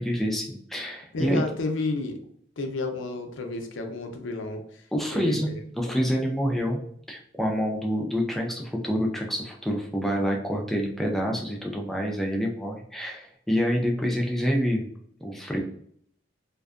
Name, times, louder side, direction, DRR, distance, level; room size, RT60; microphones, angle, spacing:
voice 1, 0.0-1.4 4.9-5.5 5.8-6.8 7.1-14.9 15.2-15.6, equal, ahead, 0 dB, 0.3 m, -27 dB
voice 2, 1.1-2.2 2.6-4.8 5.1-5.6 5.9-6.0, left 2 dB, 85° left, 5 dB, 0.5 m, -31 dB
2.5 x 2.2 x 2.4 m, 0.64 s
head